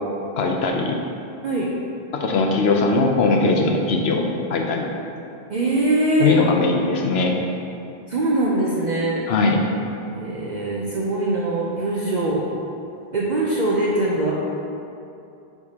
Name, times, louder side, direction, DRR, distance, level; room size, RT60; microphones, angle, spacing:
voice 1, 0.4-1.0 2.1-4.2 4.5-4.9 6.2-7.4 9.3-9.6, left 3 dB, 80° left, 1 dB, 1.0 m, -20 dB
voice 2, 5.5-6.3 8.1-9.2 10.1-12.4 13.1-14.3, right 2 dB, 50° right, -5 dB, 0.7 m, -22 dB
8.2 x 4.8 x 2.8 m, 2.7 s
omnidirectional pair, 1.0 m